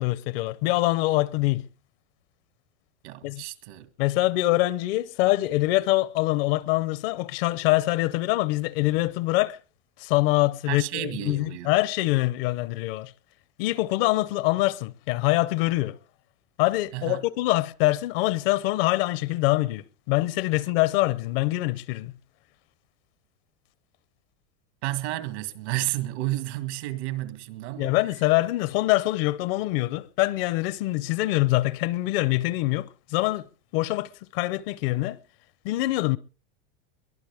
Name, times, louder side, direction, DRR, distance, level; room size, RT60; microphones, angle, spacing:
voice 1, 0.0-1.7 3.2-3.4 4.0-9.6 10.0-13.1 13.6-16.0 16.6-22.1 27.8-33.5 33.7-35.2 35.6-36.2, left 18 dB, 60° left, 0.8 m, -24 dB
voice 2, 3.0-3.9 10.7-11.7 16.9-17.3 24.8-28.0, right 16 dB, 75° right, 2.1 m, -31 dB
23.0 x 17.5 x 3.5 m
supercardioid pair, 150°, 34 cm